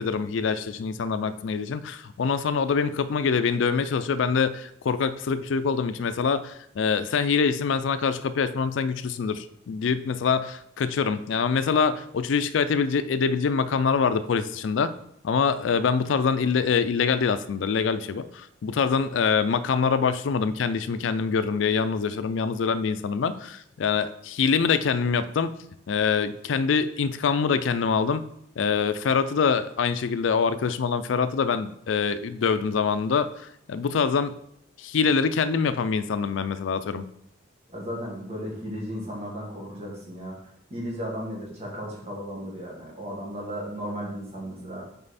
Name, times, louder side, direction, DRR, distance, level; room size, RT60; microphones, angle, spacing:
voice 1, 0.0-14.9 15.2-25.5 25.9-28.2 28.6-33.3 33.7-34.3 34.8-37.1, left 5 dB, 75° left, 13 dB, 0.4 m, -25 dB
voice 2, 37.7-40.4 40.7-44.8, equal, 35° right, -3 dB, 1.7 m, -35 dB
5.4 x 4.3 x 4.1 m, 0.73 s
head